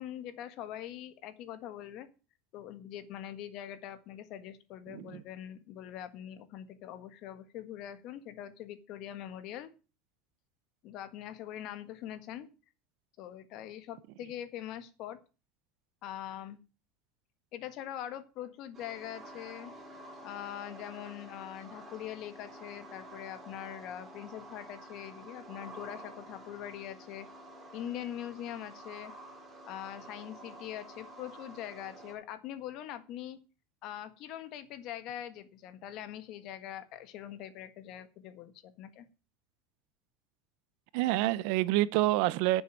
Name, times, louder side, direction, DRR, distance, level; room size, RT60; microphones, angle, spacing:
voice 1, 0.0-2.1 2.5-9.7 10.8-12.5 13.2-15.2 16.0-16.6 17.5-19.7 20.2-27.3 27.7-29.1 29.6-33.4 33.8-39.0, left 11 dB, 55° left, 1.6 m, -43 dB
voice 2, 4.9-5.2 40.9-42.6, right 16 dB, 70° right, 0.7 m, -27 dB
sound 1, 18.7-32.1, right 1 dB, 20° right, 4.6 m, -50 dB
9.8 x 7.1 x 7.4 m
supercardioid pair, 135°, 0 cm